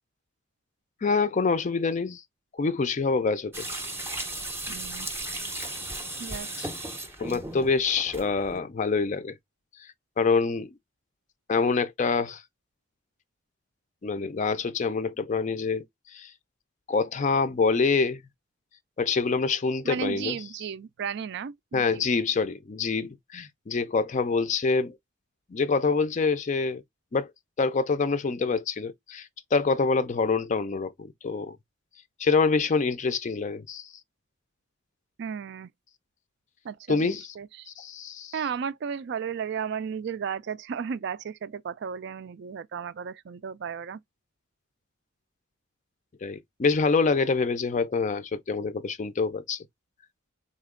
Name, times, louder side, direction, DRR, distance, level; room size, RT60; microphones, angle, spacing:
voice 1, 1.0-2.2 2.5-3.7 6.6-6.7 7.2-9.4 9.8-9.9 10.2-10.7 11.5-12.4 14.0-15.8 16.1-16.3 16.9-18.2 19.0-20.4 21.7-25.0 25.5-26.8 27.1-27.3 27.6-31.6 32.2-33.9 36.9-37.3 37.7-38.4 46.2-49.6, left 4 dB, 35° left, 0.4 m, -26 dB
sound 1, 3.5-8.6, right 1 dB, 10° right, 0.6 m, -36 dB
voice 2, 4.7-5.1 6.2-6.5 19.8-22.0 35.2-35.7 36.6-37.7 38.3-44.0, right 7 dB, 55° right, 0.3 m, -34 dB
4.2 x 2.9 x 3.6 m
head